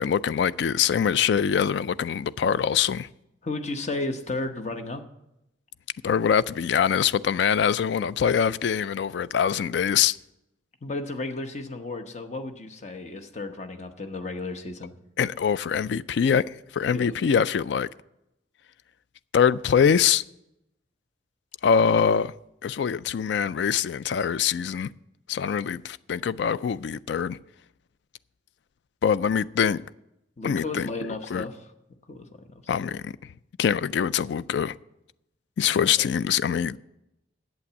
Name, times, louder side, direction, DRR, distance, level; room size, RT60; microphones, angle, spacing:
voice 1, 0.0-3.1 6.0-10.2 15.2-17.9 19.3-20.2 21.6-22.3 22.6-24.9 25.3-27.4 29.0-29.8 30.4-30.9 31.3-31.4 32.7-33.1 33.6-34.7 35.6-36.8, left 7 dB, 65° left, 0.3 m, -23 dB
voice 2, 3.4-5.0 10.8-14.9 16.9-17.1 30.4-31.7 32.1-32.5 35.8-36.1, left 2 dB, 40° left, 0.9 m, -33 dB
8.6 x 7.8 x 8.1 m
head